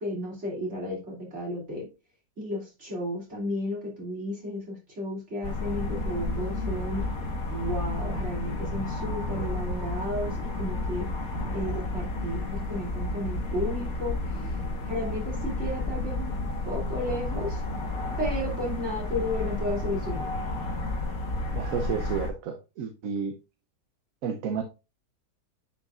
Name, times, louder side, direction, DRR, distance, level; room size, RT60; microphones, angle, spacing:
voice 1, 0.0-1.9 2.4-7.1 7.5-11.1 11.5-16.3 16.6-17.6 18.2-20.3, left 1 dB, 45° right, -2 dB, 3.2 m, -33 dB
sound 1, 5.4-22.3, left 2 dB, 60° left, 1.9 m, -31 dB
voice 2, 21.5-23.4 24.2-24.6, right 7 dB, 65° right, 7 dB, 1.1 m, -31 dB
10.5 x 5.2 x 2.4 m, 0.28 s
omnidirectional pair, 1.7 m